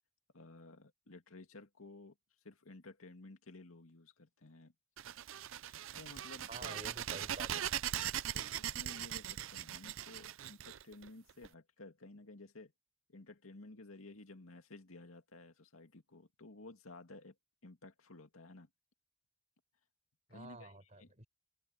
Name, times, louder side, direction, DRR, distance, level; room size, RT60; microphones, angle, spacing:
voice 1, 0.3-2.1 2.4-4.7 5.6-6.9 8.3-12.7 13.1-17.3 17.6-18.7 20.3-21.1, left 2 dB, 90° left, 2.3 m, -54 dB
sound 1, 5.0-11.5, right 11 dB, 70° right, 0.6 m, -40 dB
voice 2, 6.5-7.5 20.3-21.3, right 2 dB, 35° right, 6.0 m, -50 dB
open air
head